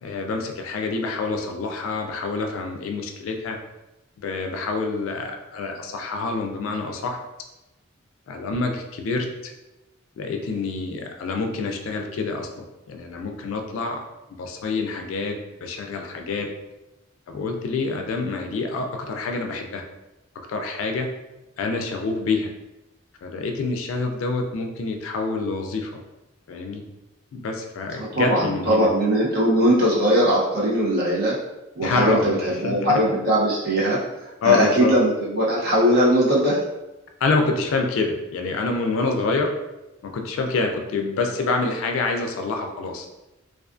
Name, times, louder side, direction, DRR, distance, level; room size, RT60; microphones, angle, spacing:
voice 1, 0.0-3.6 4.2-7.2 8.3-9.5 10.2-14.0 14.4-16.5 17.3-19.8 20.5-21.1 21.6-22.5 23.2-25.9 26.5-26.8 27.3-28.9 31.8-32.4 32.6-33.0 34.4-34.9 37.2-39.5 40.0-43.1, left 3 dB, 85° left, 4 dB, 0.3 m, -27 dB
voice 2, 28.0-31.4 31.8-34.0 34.4-36.6, equal, 50° right, -5 dB, 0.6 m, -20 dB
2.4 x 2.3 x 2.4 m, 1.0 s
head